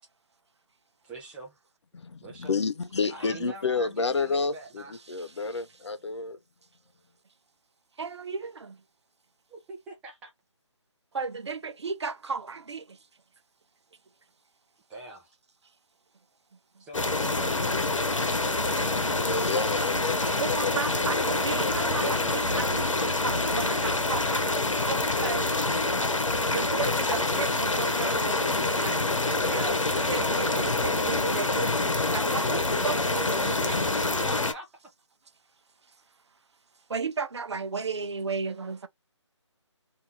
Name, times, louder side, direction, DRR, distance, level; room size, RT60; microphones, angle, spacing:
voice 1, 1.0-1.5 2.2-2.6 3.1-5.0 9.5-10.3 14.9-15.4 16.8-18.3 18.6-20.1 33.7-34.0 34.3-34.9, right 3 dB, 5° right, 0.6 m, -44 dB
voice 2, 1.9-6.4 19.3-20.2 20.5-20.7 21.0-22.6 26.4-26.6, left 4 dB, 65° left, 0.7 m, -31 dB
voice 3, 5.1-5.6 8.0-8.8 11.1-13.0 16.8-16.9 20.4-24.5 24.8-25.5 26.5-33.8 36.9-38.9, right 5 dB, 60° right, 0.7 m, -34 dB
sound 1, 16.9-34.5, left 2 dB, 85° left, 1.0 m, -26 dB
2.8 x 2.8 x 3.5 m
figure-of-eight pair, 155°, 16 cm